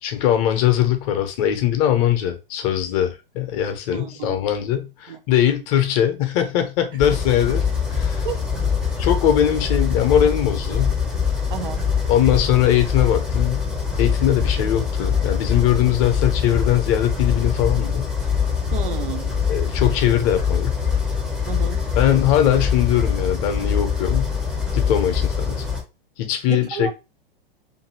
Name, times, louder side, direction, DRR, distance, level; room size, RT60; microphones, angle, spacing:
voice 1, 0.0-8.3 9.0-11.0 12.1-13.7 14.0-18.1 19.5-20.7 22.0-24.3 24.7-25.6 26.2-26.9, left 11 dB, 40° left, 0.7 m, -21 dB
voice 2, 3.9-4.4 5.1-5.2 5.5-5.6 8.2-8.4 11.5-11.9 18.7-19.4 21.5-21.8 26.5-26.9, right 9 dB, 65° right, 0.6 m, -31 dB
sound 1, 7.0-25.8, left 6 dB, 5° right, 0.6 m, -23 dB
2.6 x 2.6 x 2.9 m
figure-of-eight pair, 105°, 29 cm